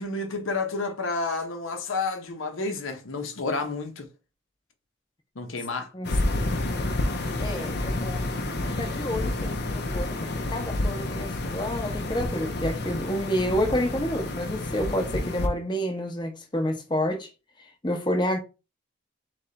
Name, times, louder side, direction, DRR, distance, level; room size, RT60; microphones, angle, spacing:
voice 1, 0.0-4.1 5.3-5.9, left 3 dB, 85° left, 0.9 m, -30 dB
sound 1, 6.0-15.5, left 2 dB, 55° left, 0.6 m, -29 dB
voice 2, 7.4-8.3 8.8-17.3 17.8-18.4, equal, 25° left, 0.8 m, -29 dB
3.4 x 3.4 x 3.9 m
head